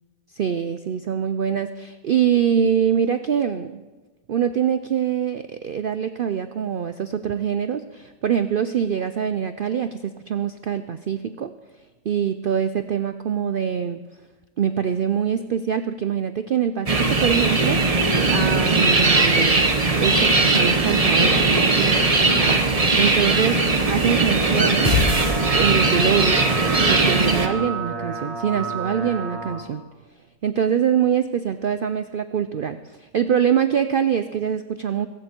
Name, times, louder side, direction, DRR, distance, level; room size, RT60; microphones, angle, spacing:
voice 1, 0.4-3.8 4.3-11.5 12.1-14.0 14.6-17.8 18.3-19.6 20.0-24.9 25.6-26.5 26.8-29.8 30.4-35.1, right 8 dB, 65° right, 10 dB, 0.5 m, -24 dB
sound 1, 16.9-27.5, right 3 dB, 25° right, 1.1 m, -19 dB
sound 2, 24.6-29.6, right 4 dB, 85° right, 6.0 m, -31 dB
sound 3, 24.8-26.1, left 4 dB, 25° left, 7.6 m, -23 dB
23.5 x 13.5 x 4.5 m, 1.3 s
omnidirectional pair, 1.5 m